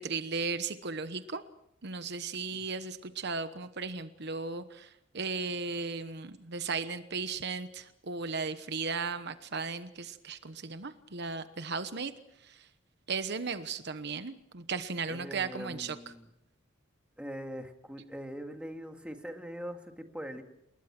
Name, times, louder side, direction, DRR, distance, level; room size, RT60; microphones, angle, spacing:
voice 1, 0.0-1.4 1.8-4.9 5.1-12.1 12.5-12.6 13.1-16.0, right 4 dB, 60° right, 10 dB, 1.1 m, -36 dB
voice 2, 15.1-16.3 17.2-20.4, equal, 5° right, 4 dB, 2.2 m, -42 dB
29.0 x 21.0 x 6.1 m, 0.80 s
head